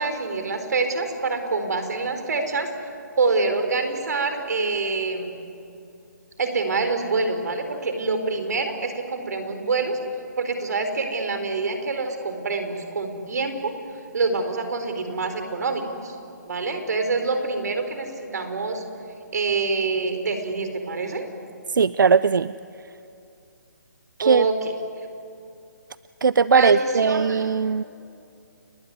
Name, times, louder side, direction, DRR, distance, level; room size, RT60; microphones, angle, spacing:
voice 1, 0.0-2.7 3.2-5.3 6.4-10.0 10.4-13.8 14.1-16.2 16.5-18.8 19.3-21.2 24.2-24.7 26.6-27.5, right 3 dB, 60° right, 7 dB, 4.3 m, -26 dB
voice 2, 21.7-22.5 24.2-24.4 26.2-27.8, right 5 dB, 90° right, 16 dB, 0.6 m, -19 dB
30.0 x 20.0 x 9.6 m, 2.6 s
hypercardioid pair, 170°, 10 cm